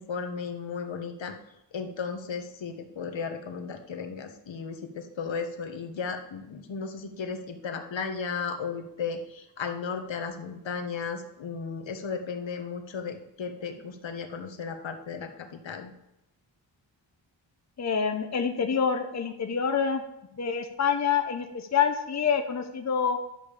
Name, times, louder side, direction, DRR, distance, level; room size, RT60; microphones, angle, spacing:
voice 1, 0.0-1.3 1.7-15.9, left 5 dB, 75° left, 5 dB, 1.4 m, -35 dB
voice 2, 17.8-20.0 20.4-23.2, left 6 dB, 35° left, 6 dB, 0.9 m, -26 dB
11.0 x 5.4 x 6.7 m, 0.86 s
wide cardioid pair, 120°, 45 cm